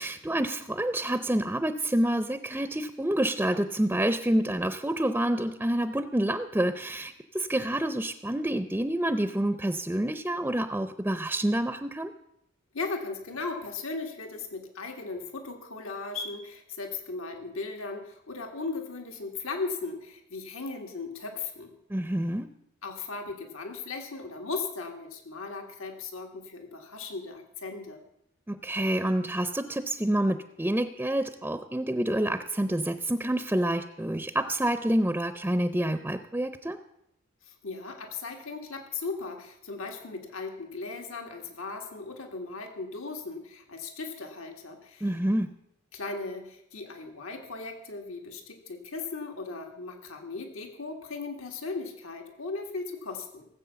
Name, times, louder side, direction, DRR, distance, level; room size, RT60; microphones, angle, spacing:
voice 1, 0.0-12.1 21.9-22.5 28.5-36.8 45.0-45.5, right 1 dB, 10° right, 10 dB, 0.5 m, -28 dB
voice 2, 12.7-21.7 22.8-28.0 37.4-45.1 45.9-53.5, left 3 dB, 85° left, 3 dB, 1.9 m, -37 dB
17.5 x 8.1 x 6.9 m, 0.78 s
head